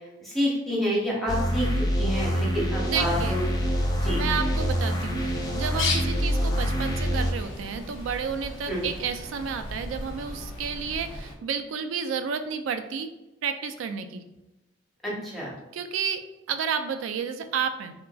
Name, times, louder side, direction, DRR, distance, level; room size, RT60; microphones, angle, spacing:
voice 1, 0.2-3.4 4.0-4.2 8.7-8.8 15.0-15.5, equal, ahead, -5 dB, 0.7 m, -28 dB
sound 1, 1.3-7.3, equal, 20° left, 0.3 m, -26 dB
voice 2, 2.9-3.4 4.1-5.2 5.5-13.1 13.4-14.2 15.7-16.2 16.5-17.9, right 6 dB, 85° right, 8 dB, 0.3 m, -31 dB
Bird, 3.0-11.3, left 2 dB, 85° left, 0.6 m, -36 dB
3.6 x 2.3 x 2.3 m, 0.99 s
head